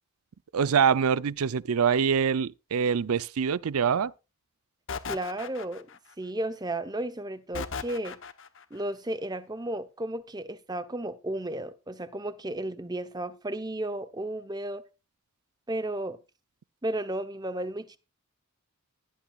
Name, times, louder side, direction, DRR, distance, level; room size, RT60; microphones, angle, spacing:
voice 1, 0.5-4.1, right 6 dB, 80° right, 0.5 m, -24 dB
sound 1, 4.9-6.1 7.5-8.6, left 5 dB, 55° left, 0.9 m, -37 dB
voice 2, 5.1-5.9 6.2-8.2 8.7-14.8 15.7-16.2 16.8-18.0, right 1 dB, 20° right, 0.8 m, -33 dB
17.0 x 11.5 x 2.4 m
head